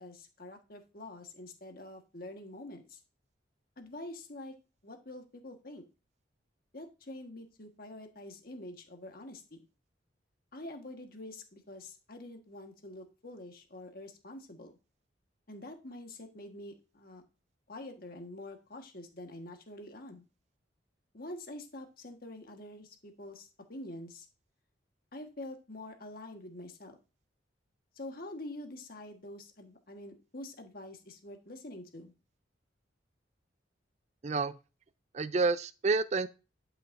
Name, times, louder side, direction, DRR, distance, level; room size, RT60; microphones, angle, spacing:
voice 1, 0.0-3.0 3.8-4.6 4.8-5.8 6.7-9.6 10.5-14.8 15.5-17.2 17.7-20.2 21.1-24.3 25.1-27.0 27.9-32.1, left 1 dB, 50° left, 1.5 m, -46 dB
voice 2, 34.2-34.6 35.1-36.3, right 4 dB, 35° right, 0.4 m, -29 dB
11.5 x 5.8 x 2.6 m
head